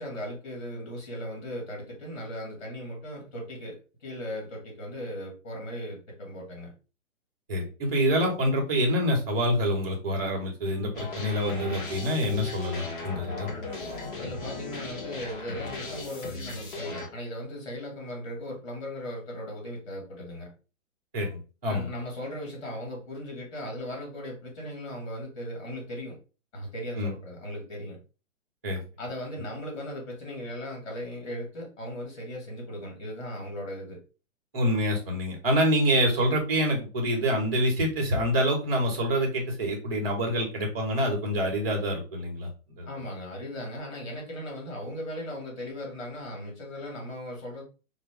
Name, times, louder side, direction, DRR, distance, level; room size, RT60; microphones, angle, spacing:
voice 1, 0.0-6.7 14.2-20.5 21.7-26.2 26.5-28.0 29.0-34.0 42.9-47.6, equal, 55° left, 0 dB, 2.2 m, -37 dB
voice 2, 7.5-13.5 21.1-21.9 27.0-27.1 28.6-28.8 34.5-42.5 42.7-42.9, equal, 10° right, 0 dB, 0.4 m, -26 dB
sound 1, 10.9-17.1, left 3 dB, 40° left, 1.0 m, -37 dB
4.8 x 2.1 x 3.4 m, 0.33 s
hypercardioid pair, 165°, 40 cm